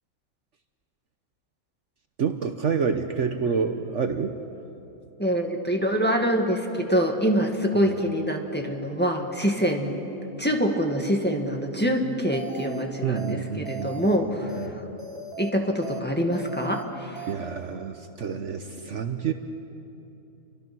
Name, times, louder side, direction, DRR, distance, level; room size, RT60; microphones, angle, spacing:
voice 1, 2.2-4.3 7.8-7.9 13.0-14.1 14.6-14.7 17.3-19.3, right 6 dB, 60° right, 7 dB, 1.2 m, -28 dB
voice 2, 5.2-10.0 10.4-14.7 15.4-17.3, equal, 5° left, 2 dB, 1.9 m, -25 dB
sound 1, 12.3-12.8 13.2-13.3 13.7-14.2 14.5-14.7 15.0-15.5 15.8-16.0 16.3-16.8 17.2-17.3, right 4 dB, 25° right, 2.0 m, -38 dB
29.5 x 24.0 x 6.1 m, 2.9 s
omnidirectional pair, 1.5 m